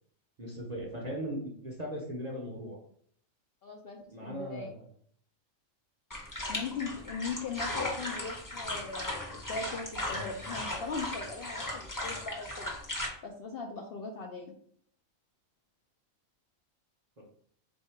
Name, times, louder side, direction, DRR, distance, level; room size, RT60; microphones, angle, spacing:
voice 1, 0.4-2.8 4.1-4.8 17.2-17.3, equal, 40° right, -2 dB, 0.7 m, -38 dB
voice 2, 3.6-4.7 6.5-12.7 13.2-14.5, left 4 dB, 60° left, 0 dB, 0.6 m, -39 dB
sound 1, 6.1-13.1, left 1 dB, 20° left, 0.6 m, -37 dB
3.7 x 2.7 x 4.3 m, 0.63 s
omnidirectional pair, 1.4 m